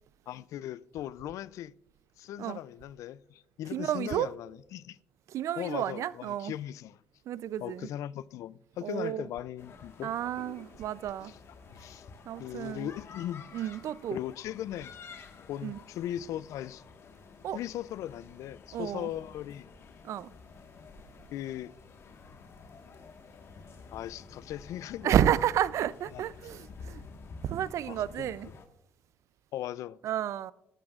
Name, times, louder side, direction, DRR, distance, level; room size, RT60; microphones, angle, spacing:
voice 1, 0.3-1.7 2.2-5.0 5.6-7.0 7.6-10.7 11.2-11.4 11.7-12.1 12.4-13.5 14.1-15.0 15.5-16.8 17.5-19.7 21.3-21.7 23.9-25.2 26.1-26.2 27.9-28.3 29.5-30.0, left 12 dB, 70° left, 0.4 m, -38 dB
voice 2, 3.7-4.3 5.3-6.5 7.3-7.9 8.8-9.2 10.0-11.3 12.3-12.9 13.5-14.2 15.6-15.8 17.4-17.6 18.7-19.1 20.0-20.3 25.0-27.0 27.4-28.5 30.0-30.5, right 11 dB, 65° right, 0.4 m, -31 dB
sound 1, 9.6-28.6, left 4 dB, 50° left, 1.5 m, -51 dB
17.0 x 13.5 x 2.4 m
supercardioid pair, 65°, 6 cm